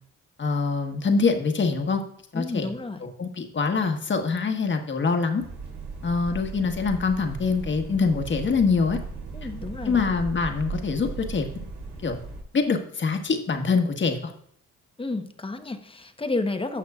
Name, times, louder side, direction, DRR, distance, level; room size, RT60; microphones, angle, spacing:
voice 1, 0.4-2.0 2.3-2.7 3.2-5.4 6.0-9.0 9.8-11.7 12.0-12.2 12.5-14.3, left 4 dB, 40° left, 5 dB, 1.4 m, -24 dB
voice 2, 2.3-3.0 9.3-10.1 15.0-16.8, left 2 dB, 20° left, 7 dB, 0.9 m, -31 dB
sound 1, 5.4-12.4, right 4 dB, 70° right, 3.2 m, -37 dB
14.5 x 5.7 x 2.4 m, 0.64 s
cardioid pair, 90°, 30 cm